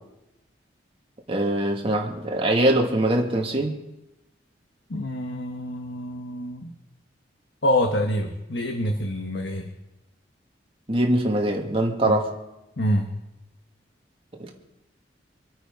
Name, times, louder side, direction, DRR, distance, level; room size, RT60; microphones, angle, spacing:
voice 1, 1.3-3.8 10.9-12.3 14.4-14.6, right 1 dB, 30° right, 1 dB, 2.2 m, -23 dB
voice 2, 4.9-6.7 7.6-9.7 12.0-12.1 12.8-13.1, left 1 dB, 65° left, 4 dB, 1.3 m, -26 dB
26.0 x 8.8 x 5.4 m, 0.95 s
head